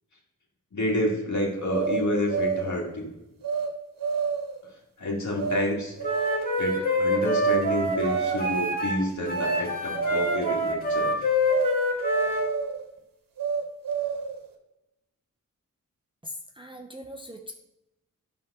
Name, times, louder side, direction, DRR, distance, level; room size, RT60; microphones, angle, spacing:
voice 1, 0.7-3.1 5.0-6.0 6.6-11.1, left 1 dB, 55° left, -1 dB, 2.0 m, -29 dB
sound 1, 1.7-2.8 3.4-3.7 4.0-4.6 5.4-5.6 6.0-6.5 7.3-7.6 7.9-8.6 9.3-9.6 9.9-10.6 11.5-11.7 12.0-12.8 13.4-14.4, right 6 dB, 75° right, 1.0 m, -28 dB
Wind instrument woodwind instrument, 6.0-9.0 9.3-12.4, left 1 dB, 25° left, 2.1 m, -26 dB
voice 2, 16.2-17.5, left 1 dB, 15° right, 3 dB, 0.6 m, -40 dB
7.7 x 3.5 x 5.9 m, 0.90 s
cardioid pair, 70°, 34 cm